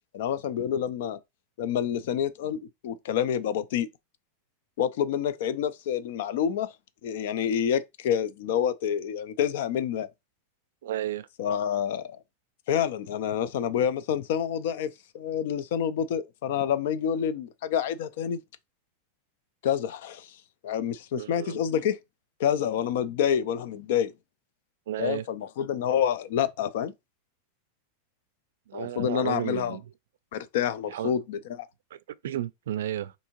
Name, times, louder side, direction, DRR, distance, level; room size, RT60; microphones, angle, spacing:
voice 1, 0.1-1.2 1.6-3.9 4.8-6.7 7.0-10.1 11.4-12.2 12.7-14.9 15.1-18.4 19.6-20.4 20.6-22.0 22.4-24.1 25.0-26.9 28.7-29.8 30.3-31.7, left 9 dB, 60° left, 0.4 m, -28 dB
voice 2, 10.8-11.3 21.1-21.6 24.9-25.3 28.7-29.8 30.9-31.2 31.9-33.1, right 12 dB, 90° right, 0.3 m, -33 dB
3.6 x 2.6 x 2.9 m
supercardioid pair, 165°, 0 cm